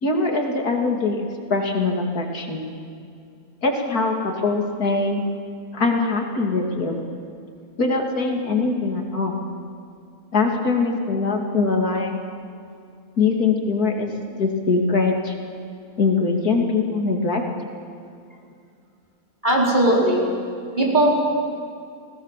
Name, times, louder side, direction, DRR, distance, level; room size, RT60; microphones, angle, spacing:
voice 1, 0.0-2.6 3.6-5.2 5.7-7.0 7.8-9.3 10.3-12.1 13.2-14.1 14.4-15.3 16.0-17.4, left 3 dB, 75° left, 2 dB, 3.1 m, -22 dB
voice 2, 19.4-20.3 20.8-21.2, right 1 dB, 30° right, -2 dB, 4.5 m, -18 dB
30.0 x 18.5 x 7.5 m, 2.4 s
omnidirectional pair, 1.6 m